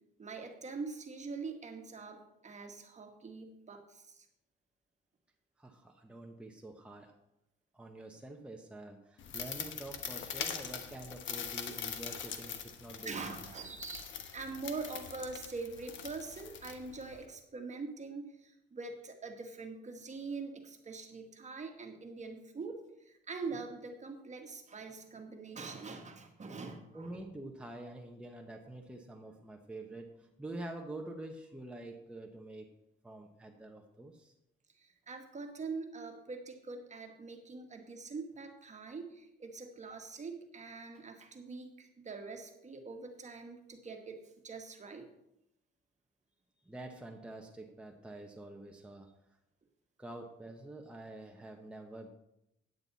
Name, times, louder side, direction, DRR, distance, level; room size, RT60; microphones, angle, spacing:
voice 1, 0.2-4.3 13.0-27.2 34.8-45.1, right 4 dB, 35° right, 5 dB, 1.5 m, -44 dB
voice 2, 5.6-7.2 7.7-13.3 26.9-32.7 33.0-34.3 46.6-49.1 50.0-52.1, right 2 dB, 5° right, 2 dB, 1.0 m, -47 dB
sound 1, 9.2-17.3, left 7 dB, 70° left, 1.1 m, -43 dB
9.4 x 8.9 x 4.1 m, 0.84 s
cardioid pair, 90°, 20 cm